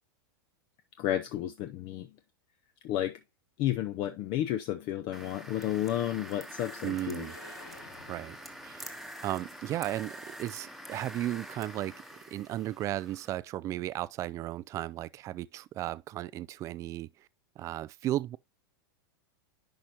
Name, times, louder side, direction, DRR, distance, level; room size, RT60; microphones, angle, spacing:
voice 1, 1.0-2.1 2.8-3.2 3.6-7.3, left 12 dB, 40° left, 0.6 m, -32 dB
sound 1, 5.1-13.4, right 1 dB, ahead, 1.1 m, -46 dB
sound 2, 6.5-10.5, left 6 dB, 70° left, 2.2 m, -55 dB
voice 2, 6.8-7.3 8.1-8.4 8.6-9.0 9.2-12.0 12.3-17.1 17.6-18.4, right 14 dB, 25° right, 0.3 m, -35 dB
10.5 x 5.1 x 2.9 m
supercardioid pair, 140°, 12 cm